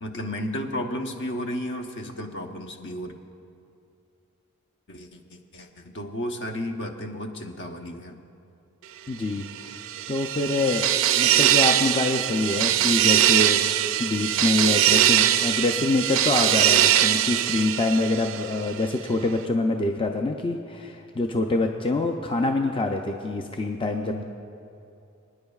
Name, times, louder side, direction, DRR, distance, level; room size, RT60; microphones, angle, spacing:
voice 1, 0.0-3.1 4.9-8.2 12.5-13.0 24.0-24.2, left 1 dB, 60° left, 4 dB, 0.9 m, -33 dB
voice 2, 9.1-9.8 10.1-10.9 11.2-13.6 14.0-24.2, left 2 dB, 25° left, 3 dB, 0.4 m, -25 dB
sound 1, 9.6-18.7, right 12 dB, 65° right, 0.4 m, -22 dB
28.0 x 9.7 x 2.4 m, 2.6 s
head